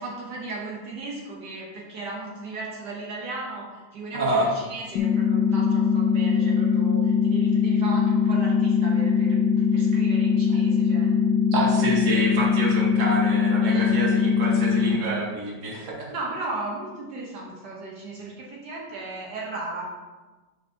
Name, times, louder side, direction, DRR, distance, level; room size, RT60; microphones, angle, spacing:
voice 1, 0.0-11.1 13.6-14.0 14.7-14.9 16.1-19.8, right 2 dB, 75° right, -3 dB, 1.7 m, -36 dB
voice 2, 4.1-4.5 11.5-16.1, right 2 dB, 50° right, -3 dB, 1.8 m, -27 dB
sound 1, 5.0-15.0, left 6 dB, 75° left, 1.2 m, -21 dB
9.8 x 5.2 x 2.8 m, 1.2 s
omnidirectional pair, 1.9 m